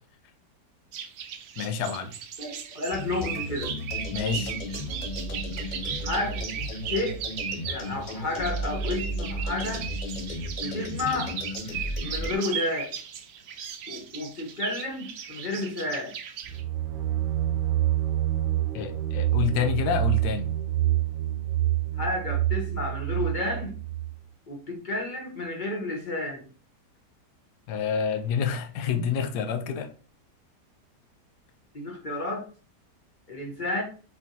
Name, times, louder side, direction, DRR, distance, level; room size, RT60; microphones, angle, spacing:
sound 1, 0.9-16.6, right 8 dB, 65° right, 0.9 m, -37 dB
voice 1, 1.6-2.1 4.1-4.6 18.7-20.5 27.7-29.9, left 6 dB, 75° left, 1.2 m, -28 dB
voice 2, 2.4-3.7 6.0-6.5 6.8-7.2 7.7-9.9 10.6-11.3 12.0-12.9 13.9-16.1 22.0-23.7 24.5-26.4 31.7-32.4 33.3-33.8, left 2 dB, 35° left, 0.8 m, -31 dB
sound 2, 2.9-12.3, equal, 55° left, 0.5 m, -34 dB
sound 3, 16.4-24.2, right 13 dB, 85° right, 1.2 m, -27 dB
4.6 x 4.2 x 2.7 m
omnidirectional pair, 1.8 m